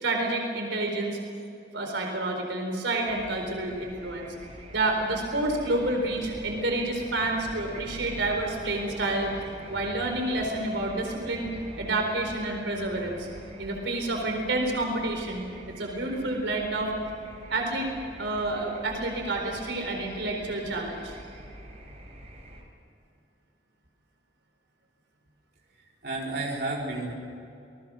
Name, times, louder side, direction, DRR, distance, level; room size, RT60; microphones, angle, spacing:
voice 1, 0.0-1.2 1.7-4.3 4.7-9.3 9.7-11.5 11.8-13.3 13.6-16.9 17.5-17.9 18.2-21.2, right 2 dB, 85° right, 2 dB, 4.2 m, -29 dB
sound 1, 3.1-22.6, right 1 dB, 35° right, 4.7 m, -45 dB
voice 2, 26.0-27.1, right 2 dB, 60° right, -3 dB, 4.4 m, -31 dB
27.5 x 20.0 x 6.3 m, 2.7 s
head